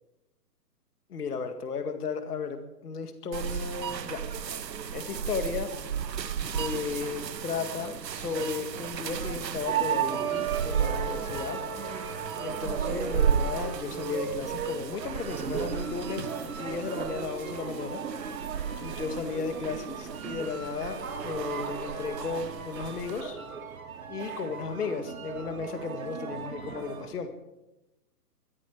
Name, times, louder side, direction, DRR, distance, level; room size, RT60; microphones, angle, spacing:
voice 1, 1.1-2.6 2.8-4.2 4.9-5.7 6.5-11.6 12.4-18.0 18.8-23.4 24.1-27.3, left 5 dB, 65° left, 7 dB, 2.0 m, -35 dB
sound 1, 3.3-23.2, right 7 dB, 85° right, 1.3 m, -34 dB
sound 2, 9.6-27.1, right 7 dB, 55° right, 3.1 m, -36 dB
20.5 x 14.5 x 4.7 m, 0.97 s
hypercardioid pair, 175°, 49 cm